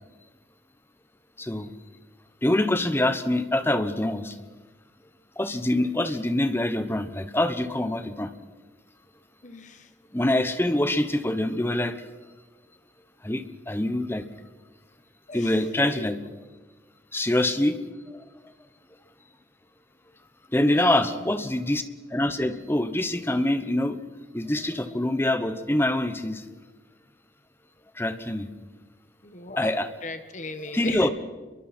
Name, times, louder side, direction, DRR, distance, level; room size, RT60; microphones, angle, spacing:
voice 1, 1.4-1.7 2.4-4.4 5.4-8.3 10.1-12.0 13.2-14.3 15.3-16.2 17.1-17.8 20.5-21.8 22.1-24.0 24.3-26.4 28.0-28.5 29.6-29.9 30.7-31.1, left 1 dB, 15° left, 10 dB, 1.0 m, -25 dB
voice 2, 9.4-9.9 15.3-15.5 15.8-16.1 20.5-21.2 29.2-31.1, left 3 dB, 40° left, 8 dB, 1.5 m, -37 dB
29.5 x 23.0 x 4.4 m, 1.3 s
head